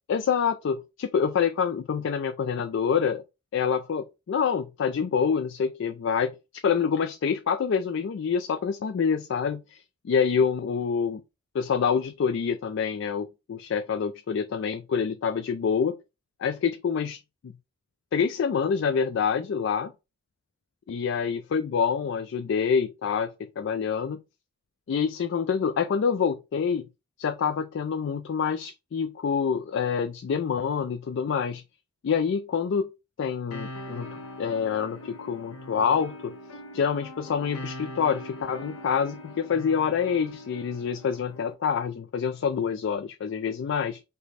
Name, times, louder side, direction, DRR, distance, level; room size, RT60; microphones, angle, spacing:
voice 1, 0.1-3.2 3.5-6.3 6.6-11.2 11.5-16.0 16.4-17.5 18.1-19.9 20.9-24.2 24.9-26.8 27.2-31.6 32.0-32.9 33.2-36.3 36.7-44.0, left 6 dB, 55° left, 0.3 m, -26 dB
sound 1, 33.5-41.5, left 1 dB, 85° left, 0.9 m, -42 dB
5.0 x 2.2 x 4.1 m
head